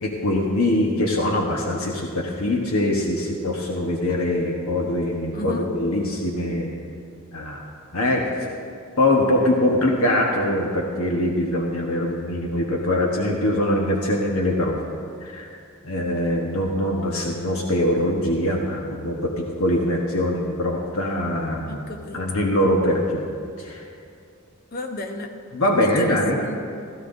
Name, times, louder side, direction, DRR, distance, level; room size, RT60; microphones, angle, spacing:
voice 1, 0.0-6.7 7.3-7.6 7.9-8.2 9.0-14.8 15.2-15.5 15.8-21.8 22.1-23.2 23.6-23.9 25.5-26.4, left 1 dB, 80° left, -1 dB, 1.2 m, -23 dB
voice 2, 5.3-5.7 21.6-22.4 24.7-25.3 25.8-26.6, left 1 dB, 45° left, 4 dB, 1.0 m, -32 dB
17.0 x 13.5 x 2.7 m, 2.5 s
head